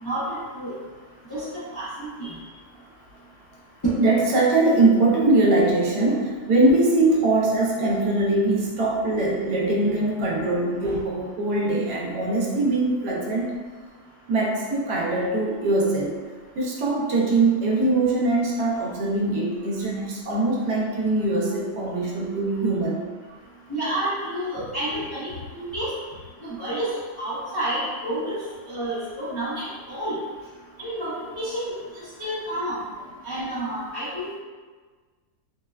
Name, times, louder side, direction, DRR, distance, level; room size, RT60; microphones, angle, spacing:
voice 1, 0.0-0.7 1.3-2.3 3.8-3.9 23.7-25.9 26.4-26.9 27.2-28.4 28.7-30.2 30.8-31.7 32.2-32.8 33.2-34.4, right 1 dB, 30° left, -12 dB, 0.4 m, -29 dB
voice 2, 4.0-13.5 14.3-16.1 16.5-23.0, right 2 dB, 85° right, -3 dB, 1.2 m, -22 dB
3.7 x 2.1 x 2.3 m, 1.4 s
omnidirectional pair, 1.7 m